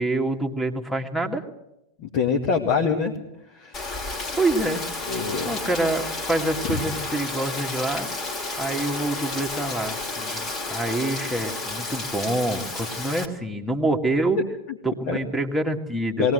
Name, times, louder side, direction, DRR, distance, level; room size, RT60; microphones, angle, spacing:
voice 1, 0.0-1.4 4.4-4.8 5.5-8.1 8.6-14.4 14.8-16.3, right 2 dB, ahead, 7 dB, 2.1 m, -26 dB
voice 2, 2.0-3.1 3.5-3.8 5.1-5.5 6.7-6.8 15.1-15.2 16.2-16.3, left 5 dB, 45° left, 1 dB, 2.1 m, -24 dB
Rain, 3.7-13.2, left 3 dB, 30° left, 2.7 m, -31 dB
21.5 x 18.0 x 7.9 m, 0.87 s
figure-of-eight pair, 90°, 0 cm